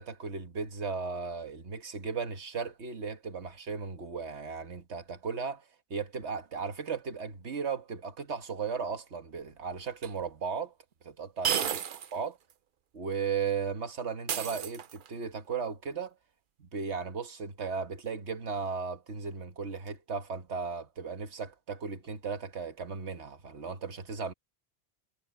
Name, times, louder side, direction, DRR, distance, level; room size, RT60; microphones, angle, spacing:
voice 1, 0.0-5.6 5.9-10.7 11.0-11.7 12.1-12.4 12.9-16.1 16.6-24.3, right 5 dB, 85° right, 1.7 m, -36 dB
sound 1, 10.0-10.1 11.4-12.2 12.5-12.6 14.3-15.2, right 8 dB, 55° right, 0.8 m, -32 dB
omnidirectional pair, 1.1 m